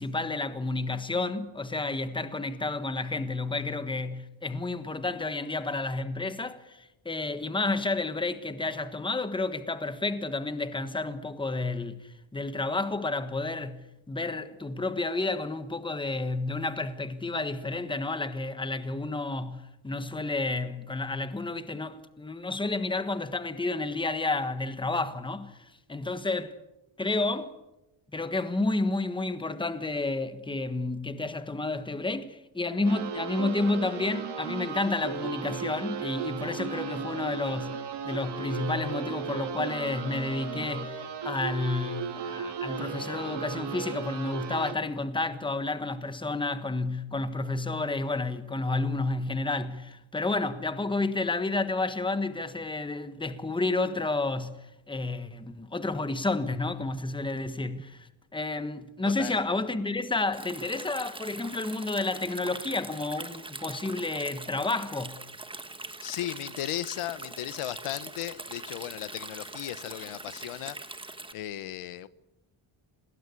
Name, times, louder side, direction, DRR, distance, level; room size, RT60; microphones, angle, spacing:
voice 1, 0.0-25.6 25.9-26.6 27.0-27.5 28.1-37.8 38.0-54.6 54.9-65.2, left 2 dB, 10° left, 1.3 m, -31 dB
sound 1, 32.8-44.7, right 6 dB, 55° right, 3.3 m, -35 dB
Stream, 60.3-71.3, right 2 dB, 10° right, 1.4 m, -42 dB
voice 2, 66.0-70.8 71.3-72.1, left 13 dB, 85° left, 1.2 m, -36 dB
27.0 x 20.0 x 8.3 m
cardioid pair, 165°, 50 cm